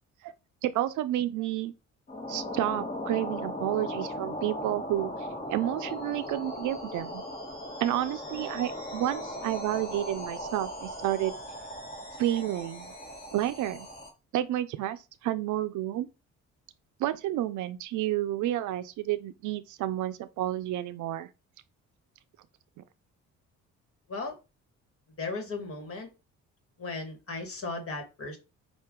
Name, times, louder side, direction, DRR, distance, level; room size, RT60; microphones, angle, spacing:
voice 1, 0.6-1.7 2.3-5.1 5.5-7.2 7.8-11.3 12.2-12.9 13.3-13.9 14.3-16.1 17.0-21.3, right 13 dB, 75° right, 0.5 m, -30 dB
sound 1, 2.1-14.1, left 1 dB, 30° left, 1.8 m, -38 dB
voice 2, 25.2-26.1 26.8-28.4, left 3 dB, 45° left, 1.8 m, -36 dB
5.5 x 2.5 x 3.7 m
cardioid pair, 90°, 30 cm